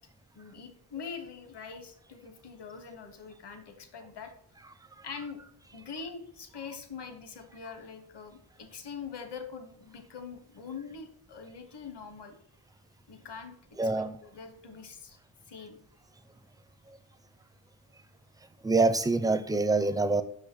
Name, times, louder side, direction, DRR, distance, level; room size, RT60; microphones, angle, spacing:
voice 1, 0.4-4.3 5.0-5.4 5.7-12.3 13.1-13.5 13.8-15.2 15.5-15.8, left 5 dB, 55° left, 1.2 m, -43 dB
voice 2, 13.8-14.2 18.6-20.2, right 3 dB, 10° right, 0.4 m, -25 dB
6.0 x 5.6 x 6.0 m
wide cardioid pair, 125°, 49 cm